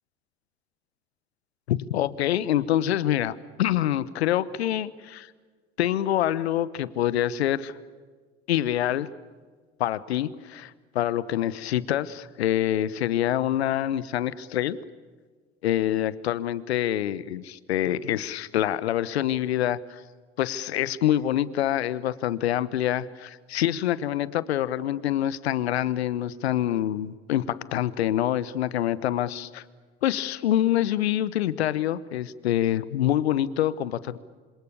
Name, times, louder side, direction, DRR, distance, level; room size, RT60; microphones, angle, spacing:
voice 1, 1.7-5.3 5.8-7.7 8.5-9.1 9.8-14.8 15.6-20.0 20.4-29.6 30.0-34.2, left 12 dB, 80° left, 18 dB, 1.1 m, -26 dB
27.0 x 27.0 x 6.9 m, 1.5 s
hypercardioid pair, 65°, 32 cm